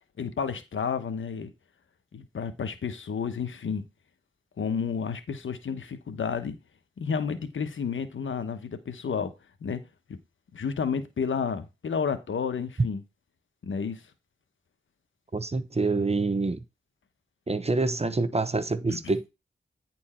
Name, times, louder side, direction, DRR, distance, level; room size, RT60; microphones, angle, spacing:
voice 1, 0.2-1.5 2.1-3.8 4.6-6.6 7.0-9.3 9.6-9.8 10.1-10.2 10.5-13.0 13.6-14.0 18.9-19.0, left 6 dB, 90° left, 1.1 m, -31 dB
voice 2, 15.3-16.6 17.5-19.3, right 3 dB, 30° right, 0.9 m, -26 dB
9.9 x 4.5 x 4.3 m
cardioid pair, 45°, 20 cm